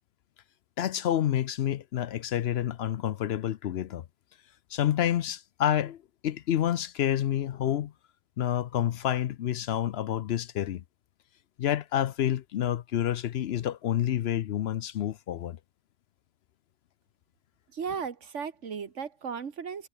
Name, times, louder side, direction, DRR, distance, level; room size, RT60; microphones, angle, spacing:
voice 1, 0.8-4.0 4.7-7.9 8.4-10.8 11.6-15.6, left 11 dB, 65° left, 0.8 m, -28 dB
voice 2, 17.7-19.9, right 6 dB, 80° right, 1.8 m, -35 dB
omnidirectional pair, 1.2 m